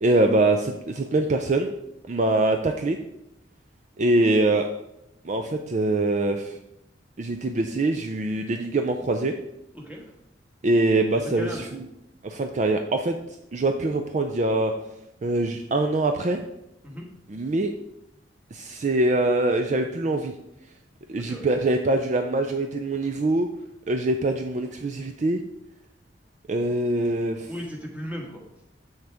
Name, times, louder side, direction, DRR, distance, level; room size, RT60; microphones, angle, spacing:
voice 1, 0.0-1.7 2.1-3.0 4.0-4.7 5.2-6.6 7.2-9.3 10.6-11.8 12.2-13.2 13.5-14.7 15.2-16.4 17.3-17.7 18.5-20.3 21.1-23.5 23.9-25.4 26.5-27.5, right 2 dB, 40° right, 5 dB, 0.4 m, -23 dB
voice 2, 9.7-10.1 11.1-11.8 16.8-17.1 21.2-21.4 27.5-28.4, equal, 10° right, -1 dB, 1.4 m, -36 dB
7.2 x 6.4 x 3.4 m, 0.85 s
head